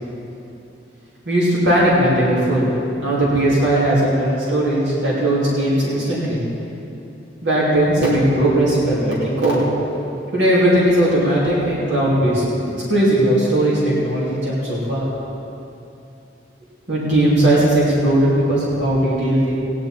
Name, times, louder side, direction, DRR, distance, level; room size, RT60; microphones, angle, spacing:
voice 1, 1.3-2.7 3.0-6.4 7.4-9.6 10.3-12.4 12.9-15.1 16.9-19.5, right 1 dB, 75° right, -8 dB, 2.9 m, -18 dB
16.5 x 10.0 x 4.5 m, 2.8 s
head